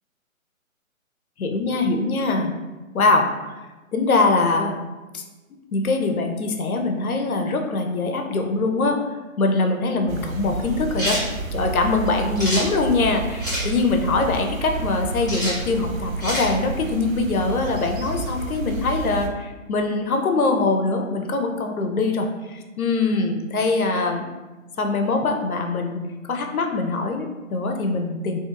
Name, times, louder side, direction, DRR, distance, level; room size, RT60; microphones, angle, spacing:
voice 1, 1.4-2.5 2.9-3.6 3.9-4.8 5.1-5.2 5.7-9.0 9.4-11.2 11.5-24.3 24.8-26.0 26.3-28.4, left 3 dB, 85° left, 4 dB, 0.7 m, -23 dB
sound 1, 10.1-19.3, right 3 dB, 75° right, 0.6 m, -30 dB
sound 2, 11.0-11.3 12.4-12.7 13.4-13.7 15.3-15.6 16.2-16.5, equal, 15° left, 0.5 m, -26 dB
4.3 x 2.8 x 2.4 m, 1.2 s
hypercardioid pair, 155°, 42 cm